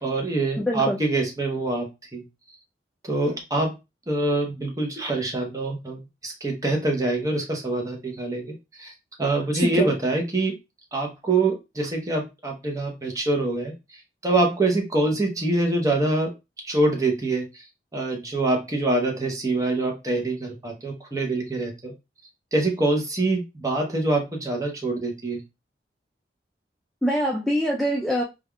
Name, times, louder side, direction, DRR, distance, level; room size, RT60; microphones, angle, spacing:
voice 1, 0.0-2.2 3.0-3.8 4.1-8.9 9.2-10.5 10.9-13.7 14.2-16.3 16.6-17.6 17.9-21.9 22.5-25.4, right 2 dB, 20° right, 1 dB, 0.7 m, -25 dB
voice 2, 0.6-1.0 9.6-9.9 27.0-28.2, equal, ahead, -3 dB, 0.3 m, -24 dB
3.3 x 2.3 x 2.2 m, 0.24 s
head